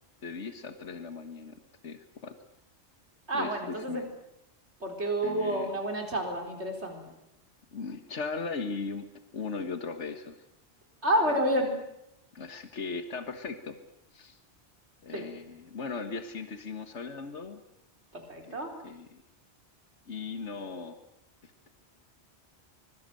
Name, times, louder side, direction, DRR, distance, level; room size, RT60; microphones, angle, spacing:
voice 1, 0.2-1.6 1.8-2.4 3.3-4.1 5.2-5.8 7.7-9.1 9.3-10.4 12.3-13.8 14.1-14.4 15.0-17.6 18.4-18.6 18.8-19.2 20.1-21.0 21.4-21.7, left 4 dB, 85° left, 8 dB, 1.9 m, -38 dB
voice 2, 3.3-4.0 4.8-7.0 11.0-11.8 15.1-15.3 18.1-18.7, right 1 dB, 70° right, 3 dB, 4.6 m, -29 dB
25.0 x 21.5 x 7.8 m, 0.81 s
omnidirectional pair, 1.2 m